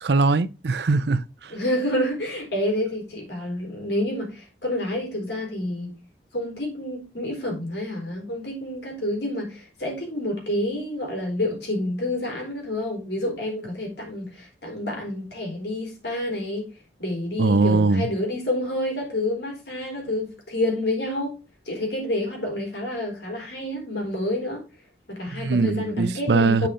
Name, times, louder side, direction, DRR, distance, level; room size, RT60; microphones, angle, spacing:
voice 1, 0.0-1.5 17.4-18.1 25.3-26.7, right 3 dB, 70° right, 0.6 m, -21 dB
voice 2, 1.5-5.9 6.3-16.7 17.0-21.3 21.7-24.6 25.1-26.7, left 1 dB, 70° left, 4.2 m, -28 dB
8.4 x 5.8 x 3.8 m
head